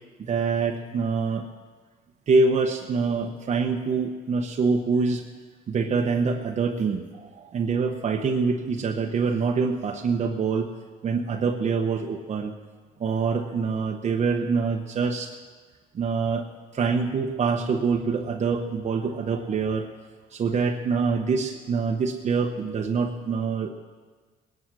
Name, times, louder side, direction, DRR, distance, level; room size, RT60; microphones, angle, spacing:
voice 1, 0.2-1.5 2.3-5.3 5.7-10.7 11.0-12.5 13.0-15.4 15.9-16.5 16.7-19.9 20.3-23.7, right 4 dB, 40° right, 2 dB, 1.1 m, -25 dB
20.0 x 10.0 x 6.2 m, 1.4 s
cardioid pair, 110°, 17 cm